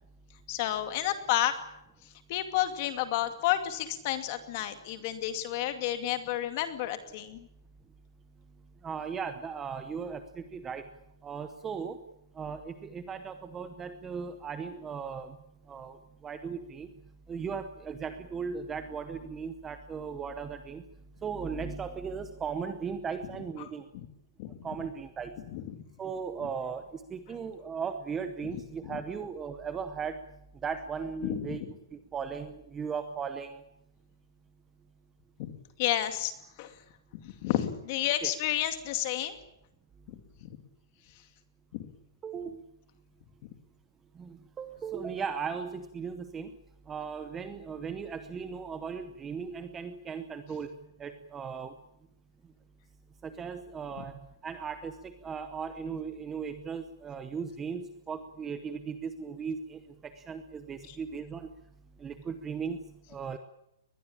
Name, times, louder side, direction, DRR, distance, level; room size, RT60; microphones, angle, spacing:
voice 1, 0.5-1.5 2.3-7.5 23.6-23.7 23.9-24.1 24.4-24.5 25.5-25.6 28.5-29.0 31.2-31.7 35.4-35.5 35.8-36.3 36.6-36.8 37.2-39.4 40.1-40.2 41.7-41.9 43.4-43.5 60.9-61.0, left 13 dB, 25° left, 8 dB, 2.3 m, -31 dB
voice 2, 8.8-10.9 11.2-12.0 12.3-15.4 15.7-17.0 17.3-20.8 21.2-23.9 24.6-25.4 26.0-30.2 30.6-31.6 31.9-33.6 38.2-38.3 42.2-42.6 44.2-46.6 46.9-50.7 51.0-51.7 53.2-61.5 62.0-63.4, right 6 dB, 10° right, 9 dB, 0.8 m, -37 dB
22.5 x 21.0 x 8.8 m, 0.80 s
hypercardioid pair, 180°, 2 cm